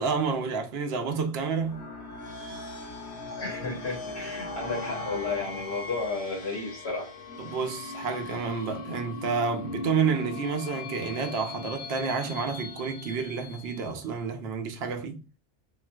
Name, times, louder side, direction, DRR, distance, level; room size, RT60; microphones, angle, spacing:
voice 1, 0.0-1.9 7.4-15.2, right 5 dB, 75° right, 0.8 m, -30 dB
sound 1, 1.5-14.1, left 3 dB, 60° left, 1.1 m, -39 dB
voice 2, 3.3-7.1, left 3 dB, 80° left, 1.3 m, -33 dB
3.8 x 2.4 x 2.2 m
omnidirectional pair, 1.1 m